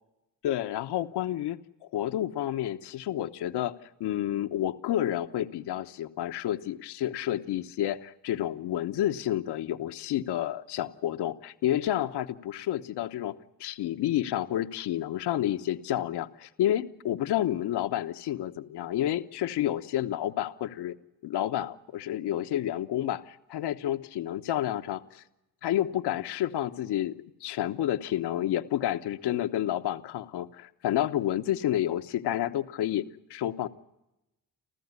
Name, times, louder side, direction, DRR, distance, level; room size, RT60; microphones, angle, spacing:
voice 1, 0.4-3.7 4.0-20.9 21.2-25.2 25.6-33.0 33.3-33.7, left 12 dB, 75° left, 9 dB, 1.1 m, -30 dB
27.5 x 14.5 x 9.6 m, 0.92 s
supercardioid pair, 75°, 40 cm